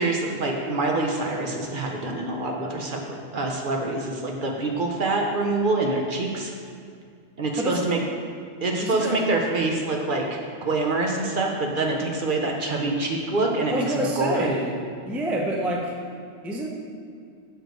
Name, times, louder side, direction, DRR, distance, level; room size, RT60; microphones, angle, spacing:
voice 1, 0.0-3.0 3.3-6.5 7.4-8.0 8.6-10.4 10.7-14.5, right 2 dB, 55° right, 1 dB, 0.7 m, -25 dB
voice 2, 7.6-8.0 8.8-9.2 13.7-14.8 15.1-16.0 16.4-16.7, right 1 dB, ahead, -1 dB, 0.3 m, -27 dB
6.4 x 4.6 x 4.5 m, 2.3 s
omnidirectional pair, 1.2 m